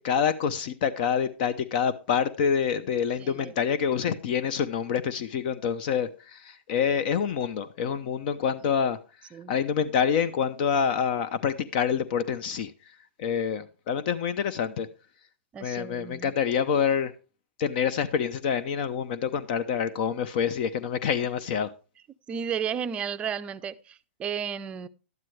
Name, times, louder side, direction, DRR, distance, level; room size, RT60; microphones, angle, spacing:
voice 1, 0.0-9.0 9.5-12.7 13.2-14.9 15.6-17.1 17.6-21.7, left 7 dB, 50° left, 0.7 m, -27 dB
voice 2, 3.2-3.5 9.3-9.5 15.5-16.3 22.3-24.9, right 8 dB, 20° right, 0.5 m, -33 dB
12.0 x 9.2 x 3.2 m
hypercardioid pair, 140°, 6 cm